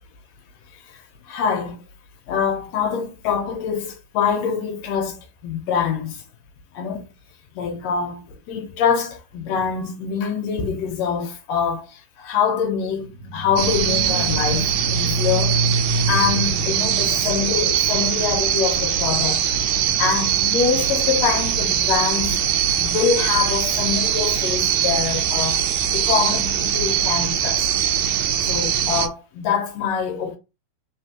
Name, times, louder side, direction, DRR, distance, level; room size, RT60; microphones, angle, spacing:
voice 1, 0.9-1.8 2.3-6.2 6.7-7.1 7.5-15.6 16.1-19.4 20.0-22.4 22.8-25.6 25.9-27.7 28.5-30.4, left 6 dB, 75° left, 1.6 m, -24 dB
sound 1, 13.1-18.0, right 2 dB, 60° right, 1.7 m, -26 dB
sound 2, 13.6-29.1, right 9 dB, 80° right, 1.5 m, -22 dB
4.0 x 3.8 x 2.8 m
omnidirectional pair, 3.7 m